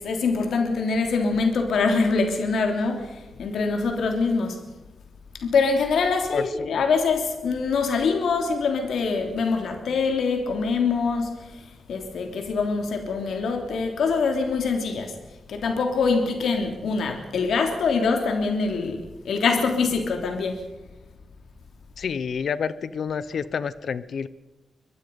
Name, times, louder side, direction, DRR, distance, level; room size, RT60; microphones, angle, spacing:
voice 1, 0.0-4.6 5.3-15.2 15.5-20.7, left 4 dB, 80° left, 3.2 m, -24 dB
voice 2, 22.0-24.3, left 6 dB, 60° left, 1.0 m, -28 dB
25.0 x 21.5 x 5.4 m
wide cardioid pair, 150°, 0 cm